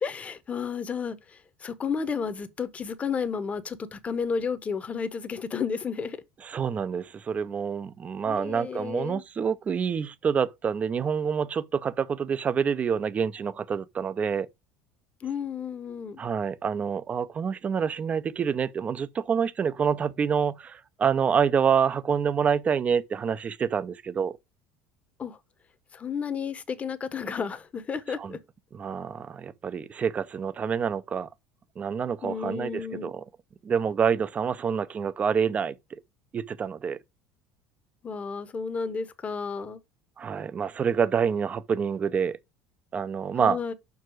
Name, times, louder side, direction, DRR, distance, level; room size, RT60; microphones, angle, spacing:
voice 1, 0.0-6.2 8.3-9.2 15.2-16.2 25.2-25.4 25.9-28.4 32.2-33.1 38.0-39.8 43.4-43.7, left 6 dB, 20° left, 0.8 m, -32 dB
voice 2, 6.5-14.5 16.2-24.4 28.2-28.3 28.7-31.3 31.8-33.2 33.6-35.8 36.3-37.0 40.2-42.4 42.9-43.6, right 7 dB, 20° right, 0.5 m, -27 dB
5.9 x 4.7 x 6.1 m
cardioid pair, 155°, 7 cm